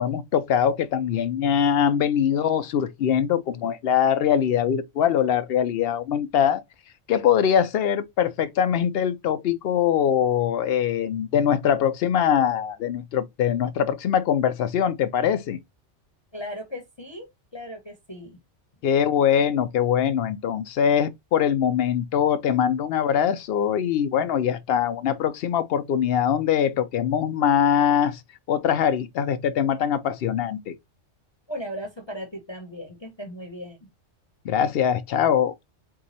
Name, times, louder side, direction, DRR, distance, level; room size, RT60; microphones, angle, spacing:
voice 1, 0.0-6.6 7.1-15.6 18.8-28.2 28.5-30.7 34.4-35.5, left 8 dB, 65° left, 0.7 m, -22 dB
voice 2, 16.3-17.3 17.5-18.4 31.5-33.9, equal, 25° left, 0.9 m, -37 dB
4.6 x 2.3 x 4.0 m
omnidirectional pair, 1.2 m